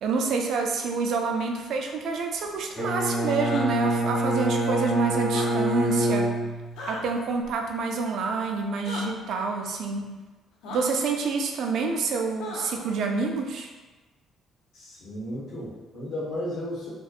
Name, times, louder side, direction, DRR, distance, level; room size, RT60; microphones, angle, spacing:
voice 1, 0.0-6.3 6.9-10.1 10.7-13.7, right 4 dB, 70° right, 2 dB, 0.3 m, -28 dB
Bowed string instrument, 2.8-7.0, right 1 dB, 5° left, 1.0 m, -26 dB
sound 1, 3.4-3.7 5.2-5.5 6.8-7.0 8.8-9.0 10.6-10.8 12.4-12.8, left 3 dB, 85° left, 0.4 m, -36 dB
voice 2, 14.7-16.9, left 1 dB, 70° left, -7 dB, 1.0 m, -34 dB
2.6 x 2.1 x 2.3 m, 1.2 s
cardioid pair, 115°, 0 cm